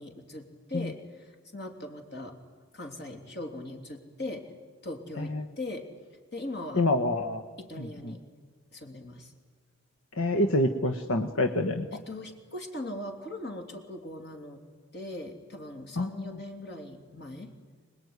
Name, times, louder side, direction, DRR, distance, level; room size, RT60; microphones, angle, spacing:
voice 1, 0.0-2.4 2.7-4.5 4.8-5.9 6.3-6.9 7.6-8.2 8.7-9.3 11.9-14.6 14.9-17.5, left 1 dB, 55° left, 5 dB, 3.2 m, -40 dB
voice 2, 6.7-7.4 7.8-8.2 10.2-11.9 16.0-16.4, left 1 dB, 85° left, 6 dB, 1.2 m, -27 dB
25.5 x 20.5 x 9.7 m, 1.4 s
head